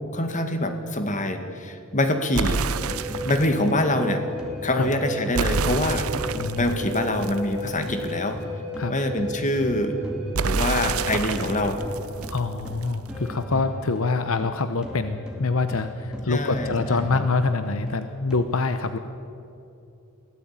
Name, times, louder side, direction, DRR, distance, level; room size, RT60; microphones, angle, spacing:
voice 1, 0.1-2.7 3.2-4.2 4.6-6.1 6.6-8.4 8.9-10.0 10.4-11.8 16.3-17.2, left 1 dB, 35° left, 7 dB, 2.1 m, -25 dB
sound 1, 2.3-3.6 5.3-8.1 10.3-13.1, right 4 dB, 85° right, 0.8 m, -28 dB
sound 2, 2.7-7.6 7.9-18.4, equal, 5° right, 2.8 m, -37 dB
Wind instrument woodwind instrument, 2.7-11.9, left 2 dB, 25° right, 7.7 m, -35 dB
voice 2, 6.4-6.8 8.8-8.9 12.3-19.0, left 3 dB, 70° left, 9 dB, 0.9 m, -25 dB
23.0 x 16.5 x 9.0 m, 2.8 s
head